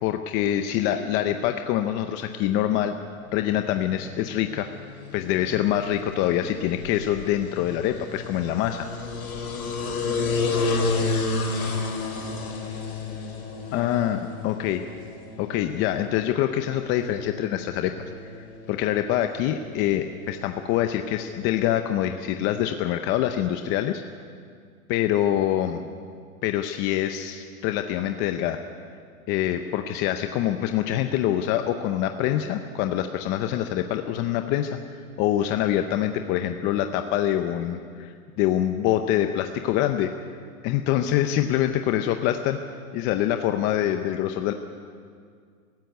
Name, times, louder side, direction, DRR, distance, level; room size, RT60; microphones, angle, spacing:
voice 1, 0.0-2.9 3.3-4.7 5.1-8.9 13.7-14.8 15.4-17.9 18.2-24.0 24.9-25.8 26.4-28.6 29.3-40.1 40.6-42.6 42.9-44.5, left 11 dB, 25° left, 7 dB, 0.7 m, -25 dB
voice 2, 0.7-1.0 9.8-13.4 13.7-14.0, left 2 dB, 55° left, 0 dB, 6.7 m, -44 dB
sound 1, 3.6-21.6, left 3 dB, 85° left, 5.1 m, -32 dB
18.5 x 15.5 x 9.5 m, 2.1 s
hypercardioid pair, 140°, 43 cm